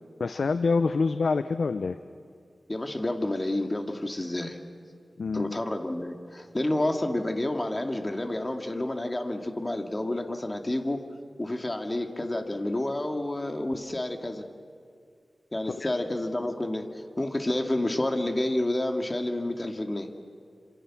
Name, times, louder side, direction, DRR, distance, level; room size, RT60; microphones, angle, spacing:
voice 1, 0.2-2.0 5.2-5.6 15.7-15.9, left 4 dB, 80° left, 10 dB, 0.7 m, -26 dB
voice 2, 2.7-4.6 5.3-11.0 11.4-14.4 15.5-16.9 17.2-20.1, left 1 dB, 25° left, 4 dB, 2.2 m, -29 dB
29.5 x 27.5 x 6.2 m, 2.3 s
wide cardioid pair, 90°, 0 cm